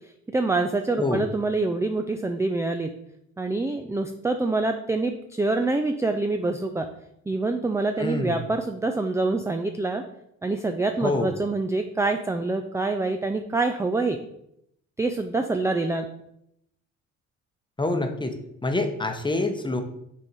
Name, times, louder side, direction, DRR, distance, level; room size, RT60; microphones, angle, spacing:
voice 1, 0.3-2.9 3.4-6.9 7.3-10.0 10.4-14.2 15.0-16.1, right 3 dB, 10° right, 6 dB, 0.4 m, -26 dB
voice 2, 8.0-8.4 11.0-11.3 17.8-18.3 18.6-19.8, left 2 dB, 15° left, 6 dB, 0.9 m, -26 dB
6.8 x 3.7 x 4.6 m, 0.77 s
cardioid pair, 90°, 30 cm